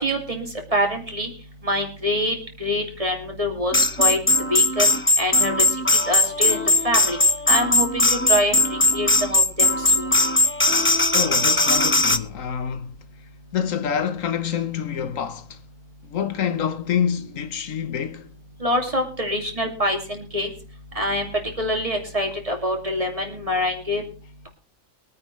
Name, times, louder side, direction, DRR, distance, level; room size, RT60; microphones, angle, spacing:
voice 1, 0.0-1.3 1.6-2.3 2.6-4.2 4.5-4.9 5.2-5.6 6.1-7.2 7.5-8.6 8.9-10.1 18.6-20.5 21.0-21.3 21.6-24.0, equal, 25° right, 2.7 m, -25 dB
sound 1, 3.7-12.2, left 2 dB, 20° left, 0.3 m, -19 dB
voice 2, 11.1-13.0 13.5-15.6 16.0-18.3, left 8 dB, 80° left, 1.4 m, -27 dB
23.0 x 9.4 x 3.3 m
omnidirectional pair, 1.4 m